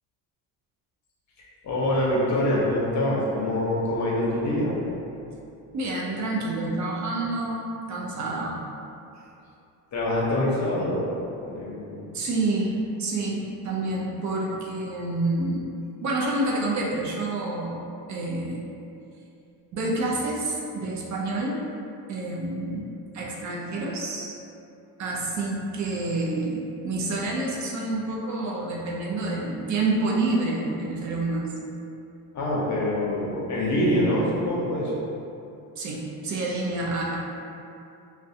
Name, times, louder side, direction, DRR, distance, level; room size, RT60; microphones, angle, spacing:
voice 1, 1.4-4.7 9.9-11.1 11.4-12.1 32.3-34.9, left 1 dB, 45° left, -5 dB, 0.7 m, -25 dB
voice 2, 5.7-8.5 12.1-15.7 16.0-18.6 19.7-21.6 22.1-24.4 25.0-31.5 35.8-37.2, right 2 dB, 45° right, -3 dB, 0.5 m, -28 dB
2.3 x 2.1 x 2.7 m, 2.7 s
cardioid pair, 90°, 40 cm